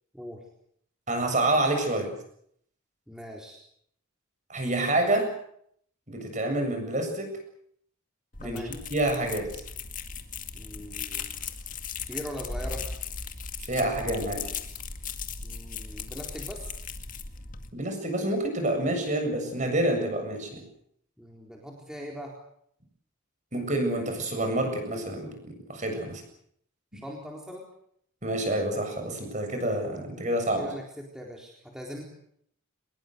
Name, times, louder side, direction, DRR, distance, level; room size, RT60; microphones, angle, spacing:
voice 1, 1.1-2.1 4.5-5.3 6.1-7.3 8.4-8.6 8.9-9.6 13.7-14.5 17.7-20.6 23.5-26.2 28.2-30.7, right 1 dB, 35° right, 5 dB, 7.6 m, -28 dB
voice 2, 3.1-3.6 8.4-8.7 10.5-11.3 12.1-12.9 15.4-16.7 21.2-22.4 26.9-27.7 30.6-32.0, equal, 5° right, -1 dB, 4.1 m, -41 dB
sound 1, 8.3-17.7, left 5 dB, 40° left, 2.1 m, -37 dB
24.0 x 21.5 x 8.1 m, 0.69 s
head